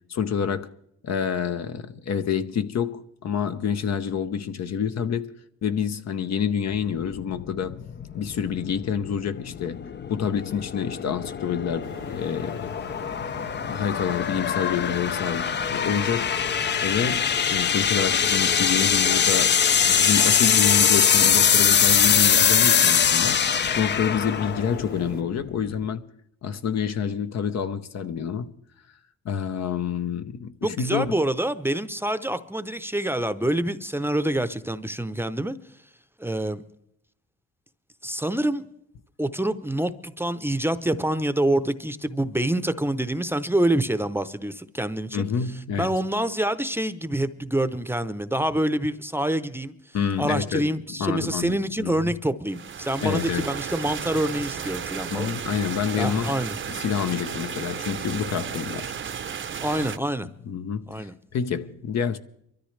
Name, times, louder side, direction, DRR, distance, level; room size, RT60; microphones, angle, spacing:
voice 1, 0.1-0.7 1.0-7.8 8.1-12.7 13.6-16.3 16.8-19.6 19.8-23.4 23.7-26.1 26.4-28.5 29.2-31.1 45.1-45.9 49.9-50.7 51.0-52.1 53.0-53.6 55.1-58.9 59.4-59.6 60.5-62.2, left 7 dB, 60° left, 0.8 m, -28 dB
sound 1, 6.7-25.9, left 7 dB, 40° left, 0.5 m, -23 dB
sound 2, 11.8-25.2, right 10 dB, 80° right, 0.7 m, -44 dB
voice 2, 30.6-35.6 36.2-36.6 38.0-38.7 39.2-45.3 45.8-49.7 50.2-55.3 55.9-56.5 59.6-60.3 60.9-61.1, right 1 dB, 10° right, 0.7 m, -26 dB
sound 3, 52.5-60.0, right 7 dB, 40° right, 0.7 m, -33 dB
23.0 x 13.5 x 3.3 m
cardioid pair, 70°, 29 cm